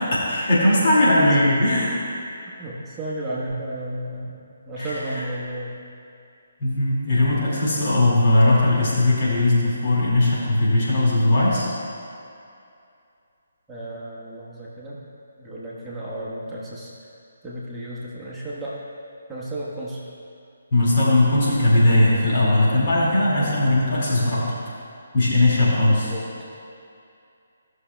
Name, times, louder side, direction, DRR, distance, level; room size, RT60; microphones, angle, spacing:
voice 1, 0.0-1.9 6.6-11.7 20.7-24.5 25.1-26.1, left 1 dB, 45° left, -7 dB, 2.2 m, -19 dB
voice 2, 1.0-1.7 2.5-5.8 13.7-15.0 15.4-16.9 17.4-18.8 19.3-20.0 23.4-23.6 25.9-26.2, right 1 dB, 10° right, -8 dB, 1.2 m, -33 dB
16.0 x 6.3 x 2.3 m, 2.5 s
figure-of-eight pair, 150°, 0 cm